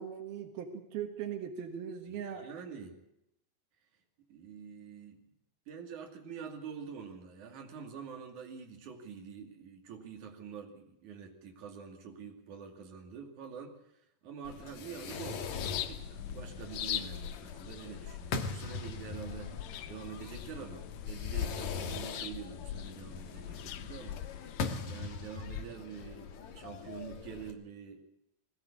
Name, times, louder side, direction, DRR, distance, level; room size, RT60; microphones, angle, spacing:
voice 1, 0.0-2.5, right 8 dB, 85° right, 6 dB, 3.4 m, -39 dB
voice 2, 2.1-3.0 4.3-5.2 5.7-19.6 19.9-24.2 24.9-28.0, right 6 dB, 55° right, 3 dB, 3.8 m, -46 dB
Fireworks, 14.4-27.5, left 5 dB, 60° left, 2.5 m, -41 dB
sound 1, 15.5-24.7, left 11 dB, 90° left, 2.9 m, -41 dB
21.0 x 16.0 x 8.5 m, 0.83 s
omnidirectional pair, 4.2 m